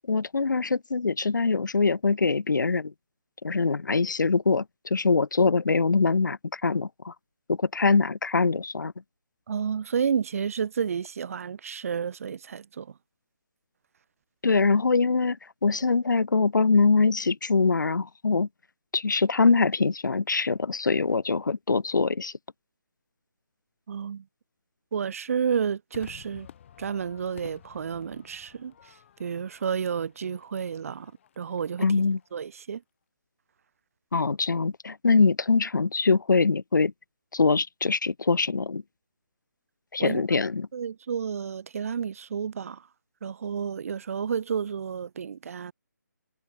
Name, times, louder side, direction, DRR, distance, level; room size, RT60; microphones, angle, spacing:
voice 1, 0.1-2.9 3.4-7.1 7.5-8.9 14.4-15.4 15.6-18.5 18.9-22.3 31.8-32.2 34.1-36.9 37.3-38.8 39.9-40.7, left 4 dB, 80° left, 0.8 m, -23 dB
voice 2, 9.5-12.9 23.9-24.2 24.9-26.5 26.8-28.9 29.2-31.1 31.4-31.9 32.3-32.8 40.0-40.2 40.7-42.8 43.2-45.7, right 7 dB, 50° right, 0.4 m, -31 dB
Crowd / Fireworks, 25.9-32.5, left 9 dB, 40° left, 6.5 m, -52 dB
figure-of-eight pair, 150°, 10 cm